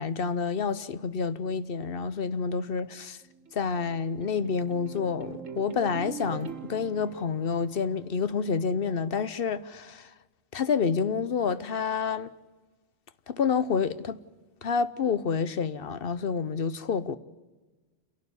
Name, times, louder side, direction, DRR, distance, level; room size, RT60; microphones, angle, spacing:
voice 1, 0.0-3.2 3.5-10.1 10.5-12.3 13.3-14.2 14.6-17.2, left 5 dB, 50° left, 1.0 m, -28 dB
sound 1, 3.2-8.6, right 6 dB, 90° right, 1.8 m, -43 dB
28.0 x 11.5 x 9.7 m
omnidirectional pair, 1.3 m